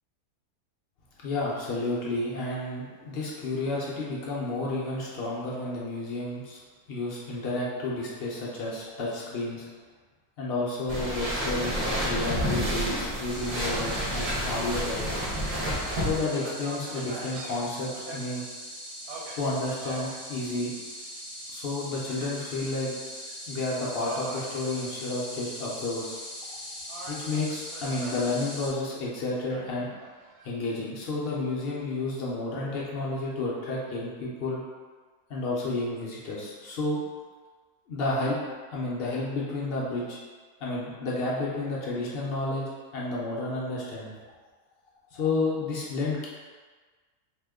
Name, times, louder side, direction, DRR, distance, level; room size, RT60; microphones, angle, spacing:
voice 1, 1.2-6.6 6.9-9.7 10.4-11.7 12.0-15.2 16.0-18.4 19.3-20.7 21.5-23.0 23.5-26.2 27.0-29.9 30.4-34.6 35.3-37.0 37.9-38.4 38.7-40.2 40.6-42.6 42.9-44.1 45.1-46.3, left 2 dB, 80° left, -5 dB, 0.5 m, -31 dB
sound 1, 10.9-16.2, equal, 45° right, 0.6 m, -29 dB
sound 2, 13.3-28.7, equal, 15° left, 0.4 m, -41 dB
Gull seagull, 13.6-14.1 14.6-14.7 15.2-18.2 19.1-20.2 20.7-21.2 22.1-22.8 23.1-23.3 23.9-25.4 25.8-26.5 26.9-28.3 29.5-30.5, right 2 dB, 90° right, 1.2 m, -43 dB
2.8 x 2.1 x 3.4 m, 1.5 s
omnidirectional pair, 1.7 m